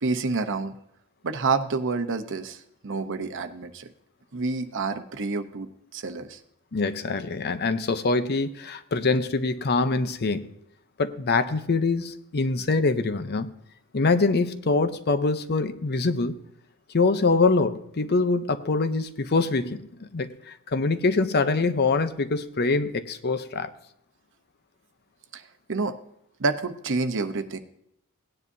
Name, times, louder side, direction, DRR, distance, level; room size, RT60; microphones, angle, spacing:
voice 1, 0.0-0.7 1.2-3.9 4.3-6.4 25.3-25.4 25.7-26.0 26.4-27.6, right 4 dB, 55° right, 0.8 m, -28 dB
voice 2, 6.7-10.5 11.0-13.5 13.9-16.4 16.9-23.7, left 3 dB, 45° left, 0.7 m, -24 dB
17.0 x 9.8 x 2.7 m
head